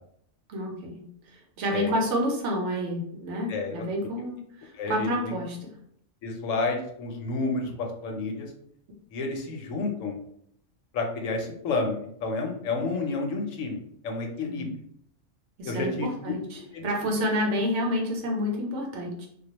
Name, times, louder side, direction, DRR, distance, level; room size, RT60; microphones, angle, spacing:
voice 1, 0.5-1.0 1.6-5.6 14.5-14.7 15.6-15.9 16.2-19.3, equal, 70° right, 0 dB, 0.9 m, -29 dB
voice 2, 3.5-3.8 4.7-5.3 6.2-8.5 9.1-10.2 10.9-14.7 15.6-16.1 16.7-16.9, left 3 dB, 80° left, 2 dB, 0.9 m, -30 dB
2.3 x 2.2 x 2.8 m, 0.68 s
omnidirectional pair, 1.3 m